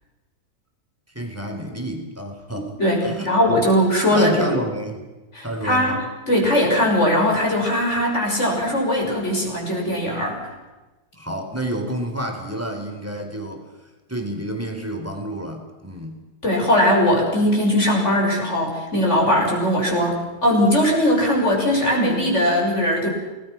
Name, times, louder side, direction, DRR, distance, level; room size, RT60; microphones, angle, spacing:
voice 1, 1.1-3.3 3.6-3.7 4.1-5.1 5.4-6.1 11.1-13.7 14.1-16.2, right 1 dB, 10° right, 3 dB, 3.8 m, -29 dB
voice 2, 2.5-4.5 5.4-6.0 6.3-10.4 16.4-23.1, equal, 45° left, -1 dB, 6.8 m, -20 dB
29.0 x 20.0 x 6.1 m, 1.2 s
omnidirectional pair, 1.8 m